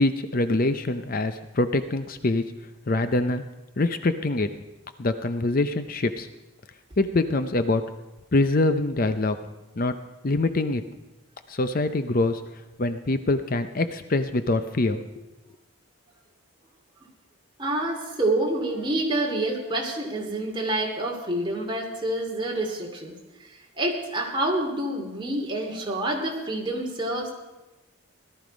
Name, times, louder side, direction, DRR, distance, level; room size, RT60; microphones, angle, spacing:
voice 1, 0.0-2.4 2.9-3.4 3.8-4.5 5.0-6.3 7.0-7.8 8.3-9.4 9.8-9.9 10.2-10.8 11.5-12.4 12.8-15.0, left 2 dB, 40° left, 10 dB, 0.6 m, -24 dB
voice 2, 17.6-23.1 23.4-27.3, right 1 dB, 25° right, 0 dB, 2.5 m, -27 dB
17.5 x 12.5 x 5.2 m, 1.1 s
head